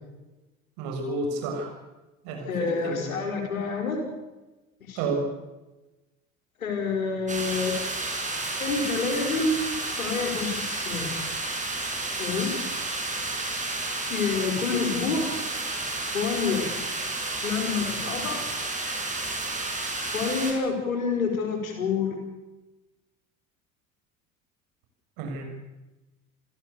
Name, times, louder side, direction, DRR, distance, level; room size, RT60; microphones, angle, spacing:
voice 1, 0.8-1.7 2.2-3.1 5.0-5.3 25.2-25.4, right 3 dB, 60° right, 3 dB, 6.9 m, -30 dB
voice 2, 2.5-4.0 4.9-5.0 6.6-7.8 8.6-9.6 10.0-11.1 12.2-12.6 13.5-13.7 14.1-15.3 16.1-16.7 17.4-18.5 20.1-22.2, left 4 dB, 80° left, 3 dB, 5.2 m, -28 dB
sound 1, 7.3-20.5, right 2 dB, 20° right, 7.0 m, -31 dB
29.0 x 16.0 x 7.0 m, 1.1 s
figure-of-eight pair, 65°, 41 cm